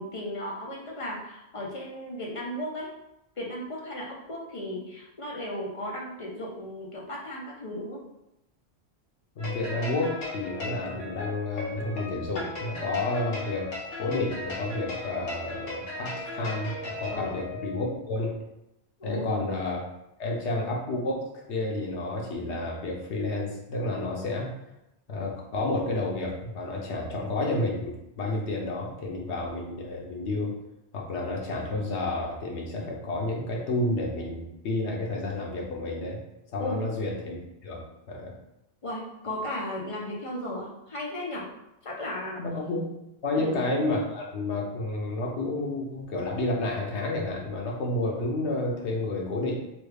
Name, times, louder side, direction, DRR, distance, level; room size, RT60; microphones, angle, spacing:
voice 1, 0.0-2.9 3.4-8.0 17.1-17.4 19.0-19.5 36.6-36.8 38.8-41.5 41.8-42.4 43.3-43.6, left 1 dB, 35° left, -3 dB, 0.6 m, -35 dB
voice 2, 9.4-13.7 14.0-18.3 19.0-19.8 20.2-24.5 25.1-30.6 30.9-36.2 36.5-37.4 37.6-37.8 38.1-38.3 42.4-42.8 43.2-49.5, left 2 dB, 85° left, -1 dB, 1.1 m, -30 dB
sound 1, 9.4-17.8, left 2 dB, 60° left, 1.0 m, -37 dB
3.2 x 2.3 x 3.3 m, 0.87 s
omnidirectional pair, 1.1 m